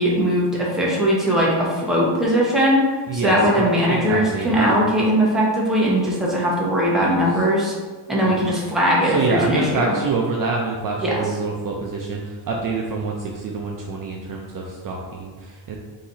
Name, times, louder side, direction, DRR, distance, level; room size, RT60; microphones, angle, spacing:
voice 1, 0.0-2.8 3.2-7.7 8.1-9.9 11.0-11.2, equal, ahead, -5 dB, 0.8 m, -19 dB
voice 2, 3.1-4.7 7.0-7.4 8.2-8.4 9.0-15.7, right 4 dB, 45° right, -1 dB, 0.5 m, -26 dB
3.9 x 2.9 x 4.0 m, 1.4 s
cardioid pair, 160°, 49 cm